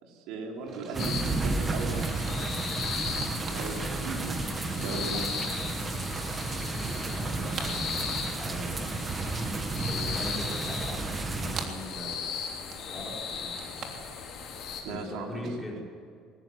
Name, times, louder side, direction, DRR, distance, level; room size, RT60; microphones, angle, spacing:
voice 1, 0.0-2.7 3.5-4.4 4.7-5.3 14.8-15.5, right 3 dB, 70° right, 1 dB, 4.2 m, -37 dB
sound 1, 0.6-4.6 4.8-5.9 6.2-8.3 8.5-9.7 10.1-15.5, right 5 dB, 40° right, 3.3 m, -46 dB
sound 2, 0.9-11.7, right 3 dB, 20° right, 1.4 m, -32 dB
sound 3, 1.0-14.8, left 6 dB, 45° left, 5.1 m, -37 dB
voice 2, 6.6-9.0 9.3-12.2 12.9-13.7 14.8-15.8, equal, ahead, -4 dB, 5.2 m, -41 dB
21.5 x 20.5 x 8.1 m, 2.4 s
cardioid pair, 155°, 0 cm